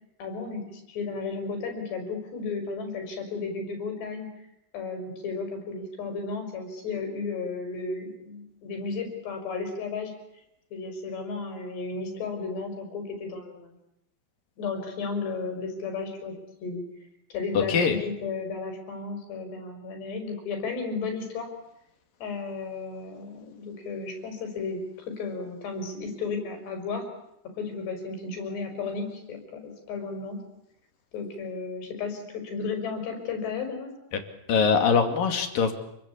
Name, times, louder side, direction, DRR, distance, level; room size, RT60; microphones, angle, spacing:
voice 1, 0.2-4.3 4.7-10.1 10.7-13.8 14.6-16.8 17.3-21.5 22.2-27.1 27.6-30.4 31.1-33.9, left 4 dB, 90° left, 5 dB, 7.6 m, -34 dB
voice 2, 17.6-18.0 34.5-35.7, left 6 dB, 60° left, 6 dB, 3.9 m, -22 dB
30.0 x 22.5 x 8.5 m, 0.81 s
omnidirectional pair, 4.7 m